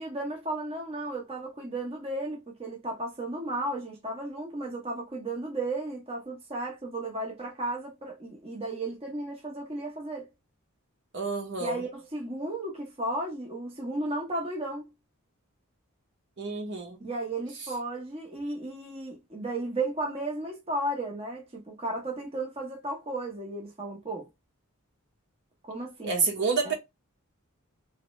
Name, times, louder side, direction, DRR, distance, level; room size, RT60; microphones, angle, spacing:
voice 1, 0.0-10.3 11.6-14.9 17.0-24.3 25.6-26.2 26.6-26.7, right 2 dB, 25° right, 0.9 m, -34 dB
voice 2, 11.1-11.8 16.4-17.0 26.0-26.7, right 4 dB, 55° right, 1.1 m, -28 dB
3.1 x 2.8 x 3.1 m
head